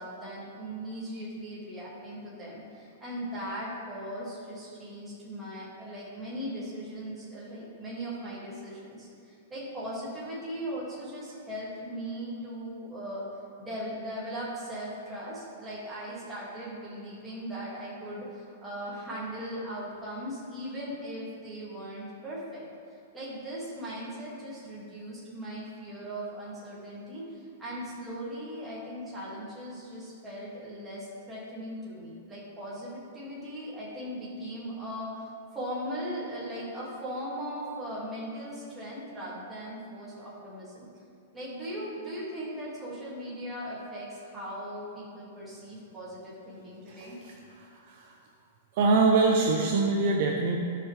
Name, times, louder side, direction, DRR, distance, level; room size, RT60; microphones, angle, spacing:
voice 1, 0.0-13.2 13.6-22.7 23.1-35.3 35.5-40.9 41.3-47.2, equal, 5° right, -8 dB, 2.2 m, -38 dB
voice 2, 46.9-48.1 48.7-50.6, right 3 dB, 40° right, 1 dB, 0.7 m, -25 dB
15.5 x 5.6 x 3.3 m, 2.5 s
supercardioid pair, 175°, 0 cm